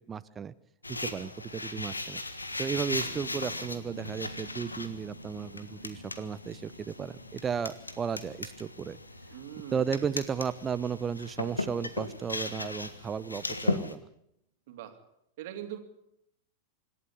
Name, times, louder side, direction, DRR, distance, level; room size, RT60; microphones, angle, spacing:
voice 1, 0.1-0.5 0.9-2.2 2.6-9.0 9.7-14.1, right 7 dB, 20° right, 15 dB, 0.8 m, -34 dB
sound 1, 0.8-14.0, left 2 dB, 80° left, 1.5 m, -37 dB
sound 2, 2.2-13.3 13.8-13.9, right 1 dB, 90° right, 2.2 m, -53 dB
sound 3, 3.0-8.6, left 2 dB, 40° left, 4.8 m, -57 dB
voice 2, 9.3-9.9 14.7-15.0 15.4-15.8, right 12 dB, 50° right, 7 dB, 2.7 m, -41 dB
26.0 x 12.5 x 9.7 m, 0.78 s
figure-of-eight pair, 90°, 0 cm